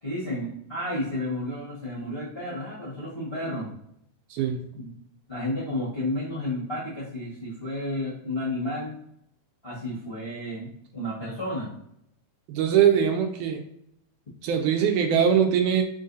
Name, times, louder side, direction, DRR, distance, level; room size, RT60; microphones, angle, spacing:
voice 1, 0.0-3.7 4.7-4.9 5.3-8.9 9.6-11.7, left 1 dB, 45° left, -8 dB, 0.7 m, -32 dB
voice 2, 12.5-13.6 14.4-15.8, right 8 dB, 80° right, 5 dB, 2.0 m, -22 dB
4.5 x 3.8 x 2.6 m, 0.73 s
omnidirectional pair, 3.6 m